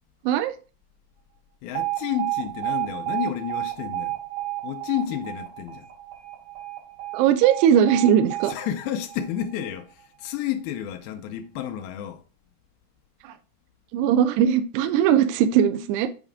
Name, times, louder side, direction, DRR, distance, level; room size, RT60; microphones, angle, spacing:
voice 1, 1.6-4.2 4.6-5.9 8.5-12.2, left 10 dB, 85° left, 2.2 m, -31 dB
Alarm, 1.7-9.8, right 16 dB, 60° right, 4.9 m, -32 dB
voice 2, 7.1-8.5 13.2-13.3 13.9-16.1, right 9 dB, 85° right, 2.6 m, -19 dB
8.1 x 4.9 x 3.6 m
omnidirectional pair, 4.9 m